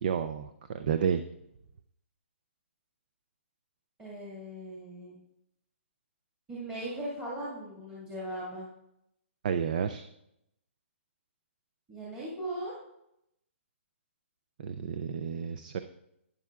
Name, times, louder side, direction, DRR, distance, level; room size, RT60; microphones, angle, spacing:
voice 1, 0.0-1.2 9.4-10.1 14.6-15.8, right 7 dB, 35° right, 10 dB, 0.4 m, -31 dB
voice 2, 4.0-5.2 6.5-8.7 11.9-12.7, right 1 dB, 10° right, -9 dB, 1.9 m, -38 dB
11.5 x 9.9 x 2.4 m, 0.81 s
hypercardioid pair, 170°, 7 cm